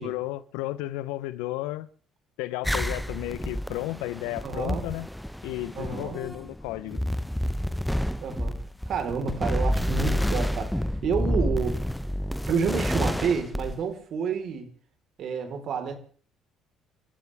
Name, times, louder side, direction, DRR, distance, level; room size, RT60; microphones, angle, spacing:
voice 1, 0.0-1.9 2.4-5.1 5.4-7.0, left 17 dB, 80° left, 0.9 m, -33 dB
sound 1, 2.6-13.8, equal, 5° left, 0.9 m, -29 dB
voice 2, 4.4-4.8 5.8-6.2 8.2-8.6 8.9-11.8 12.5-14.7 15.2-15.9, right 6 dB, 60° right, 4.2 m, -29 dB
29.0 x 14.0 x 3.6 m
supercardioid pair, 70°, 0 cm